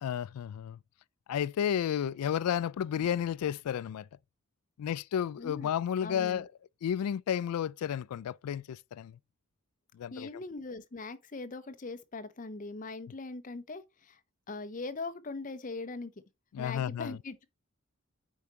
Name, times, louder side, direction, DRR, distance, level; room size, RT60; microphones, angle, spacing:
voice 1, 0.0-0.8 1.3-4.1 4.8-6.5 6.8-9.1 10.0-10.3 16.5-17.2, left 9 dB, 85° left, 0.3 m, -32 dB
voice 2, 5.4-5.7 6.0-6.5 10.1-14.2 14.5-16.1 16.6-17.5, left 3 dB, 35° left, 0.6 m, -41 dB
8.5 x 4.7 x 2.8 m
head